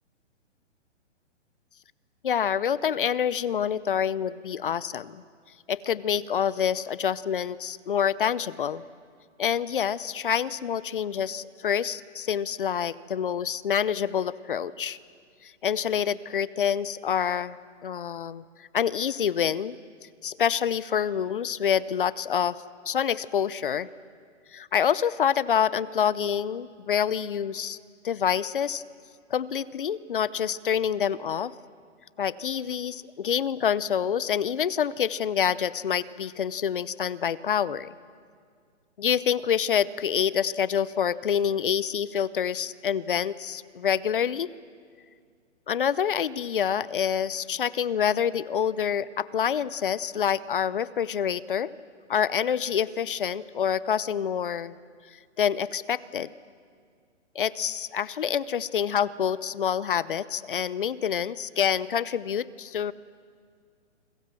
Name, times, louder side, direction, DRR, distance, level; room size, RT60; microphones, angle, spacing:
voice 1, 2.2-5.2 5.7-8.8 9.4-15.0 15.4-17.6 17.8-19.8 20.2-22.6 22.9-23.9 24.5-27.8 28.0-28.8 29.3-31.5 32.2-37.9 39.0-44.5 45.7-51.7 52.1-54.8 55.4-56.3 57.3-62.9, left 8 dB, 45° left, 19 dB, 0.7 m, -27 dB
29.0 x 21.5 x 7.6 m, 2.1 s
hypercardioid pair, 170°, 37 cm